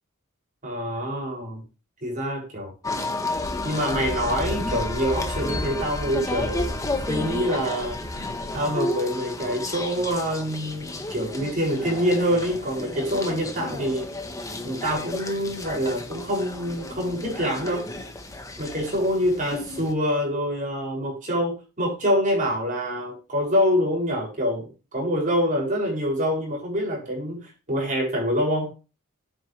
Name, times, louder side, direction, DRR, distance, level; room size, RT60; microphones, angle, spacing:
voice 1, 0.6-1.6 2.0-2.7 3.6-14.1 14.6-17.9 18.6-28.7, equal, 35° right, -2 dB, 7.0 m, -26 dB
sound 1, 2.8-19.9, left 2 dB, 15° left, 1.4 m, -32 dB
Wind, 3.3-8.6, equal, 80° right, 3.8 m, -34 dB
10.5 x 9.9 x 3.5 m, 0.31 s
head